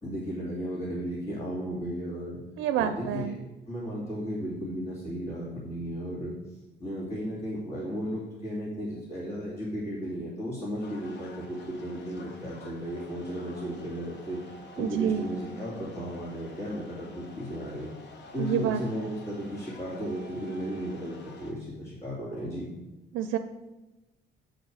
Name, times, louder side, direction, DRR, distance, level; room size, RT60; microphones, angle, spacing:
voice 1, 0.0-2.4 2.8-3.3 3.7-6.4 6.8-14.4 14.7-17.9 18.3-22.7, equal, 30° left, -8 dB, 2.6 m, -35 dB
voice 2, 2.6-3.4 14.8-15.3 18.4-19.1 23.1-23.4, right 9 dB, 85° right, 9 dB, 0.4 m, -28 dB
sound 1, 10.8-21.5, left 2 dB, 60° left, 1.2 m, -49 dB
6.4 x 5.1 x 6.3 m, 1.1 s
cardioid pair, 90°, 20 cm